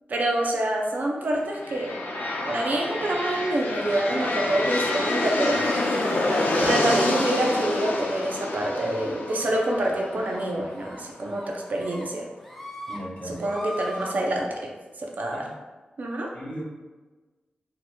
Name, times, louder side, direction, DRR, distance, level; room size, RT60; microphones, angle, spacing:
voice 1, 0.1-1.9 2.5-5.7 6.6-12.2 13.3-14.7 15.0-15.4 16.0-16.3, right 1 dB, 60° right, 0 dB, 0.5 m, -26 dB
sound 1, 1.5-11.3, left 2 dB, 85° left, 0.6 m, -27 dB
sound 2, 9.3-9.9 10.2-10.4 10.8-11.0 11.3-12.1 12.4-13.0 13.3-14.1, left 1 dB, 5° left, 0.5 m, -39 dB
voice 2, 12.9-13.4 15.3-15.6 16.3-16.6, equal, 35° left, -7 dB, 1.5 m, -37 dB
4.2 x 2.9 x 2.3 m, 1.2 s
wide cardioid pair, 115°, 3 cm